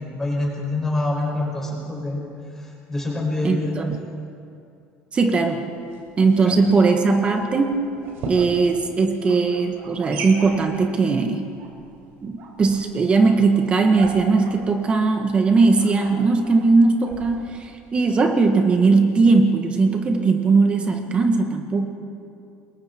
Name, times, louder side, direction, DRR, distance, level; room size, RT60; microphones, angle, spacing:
voice 1, 0.0-2.2 2.5-3.8 6.4-6.6, left 2 dB, 10° left, -3 dB, 6.4 m, -26 dB
voice 2, 3.4-3.9 5.1-5.6 6.2-7.8 8.3-11.4 12.2-21.9, right 4 dB, 25° right, 4 dB, 1.6 m, -19 dB
sound 1, 5.7-18.1, right 3 dB, 65° right, 5.2 m, -39 dB
28.0 x 22.0 x 4.5 m, 2.5 s
cardioid pair, 145°, 4 cm